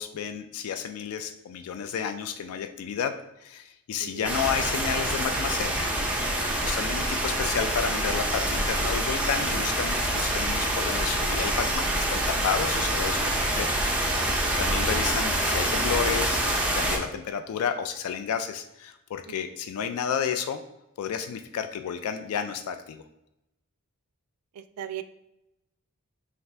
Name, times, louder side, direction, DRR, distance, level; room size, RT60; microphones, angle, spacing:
voice 1, 0.0-3.1 3.4-5.9 6.6-13.7 14.5-20.6 21.0-23.0, left 7 dB, 70° left, 8 dB, 0.3 m, -31 dB
sound 1, 4.2-17.0, right 1 dB, 5° right, 0.6 m, -26 dB
voice 2, 24.6-25.0, right 10 dB, 80° right, 12 dB, 0.3 m, -37 dB
5.4 x 2.5 x 3.3 m, 0.86 s
head